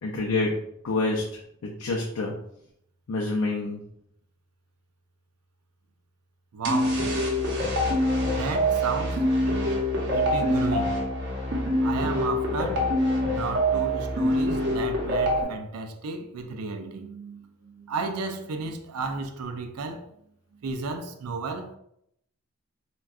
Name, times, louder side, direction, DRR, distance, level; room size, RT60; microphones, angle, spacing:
voice 1, 0.0-0.6 0.8-1.3 1.6-2.3 3.1-3.8, left 3 dB, 75° left, 0.4 m, -27 dB
voice 2, 6.5-7.0 8.2-9.2 10.1-11.0 11.8-12.9 13.3-20.1 20.6-21.7, right 4 dB, 90° right, 0.4 m, -33 dB
sound 1, 6.6-15.4, equal, 55° right, 0.7 m, -25 dB
3.5 x 2.2 x 2.3 m
head